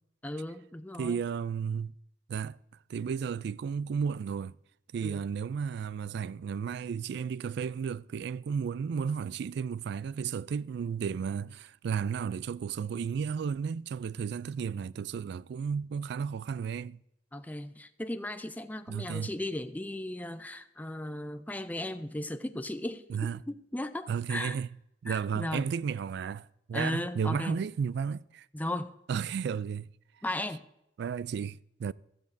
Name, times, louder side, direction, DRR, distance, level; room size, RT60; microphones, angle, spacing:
voice 1, 0.2-1.2 5.0-5.2 17.3-24.6 25.1-25.7 26.7-27.6 28.5-28.9 30.2-30.6, left 1 dB, 10° left, 0.5 m, -36 dB
voice 2, 1.0-1.9 2.3-2.6 2.9-4.5 4.9-17.0 18.9-19.3 23.1-23.4 24.1-24.7 25.0-28.5 29.1-29.9 31.0-31.9, right 6 dB, 65° right, 0.3 m, -33 dB
15.5 x 13.0 x 2.6 m
head